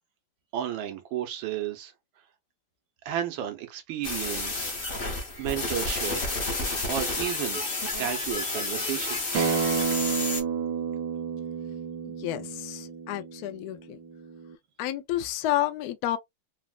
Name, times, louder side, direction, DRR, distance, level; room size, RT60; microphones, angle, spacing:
voice 1, 0.5-1.9 3.0-4.7 5.4-6.2 6.6-7.6 8.0-9.5, right 11 dB, 85° right, 1.5 m, -33 dB
sound 1, 4.0-10.4, left 2 dB, 45° left, 0.7 m, -30 dB
Acoustic guitar, 9.3-14.5, right 7 dB, 65° right, 1.1 m, -31 dB
voice 2, 12.2-14.0 14.8-16.2, left 13 dB, 80° left, 0.8 m, -30 dB
4.0 x 2.1 x 2.3 m
omnidirectional pair, 2.1 m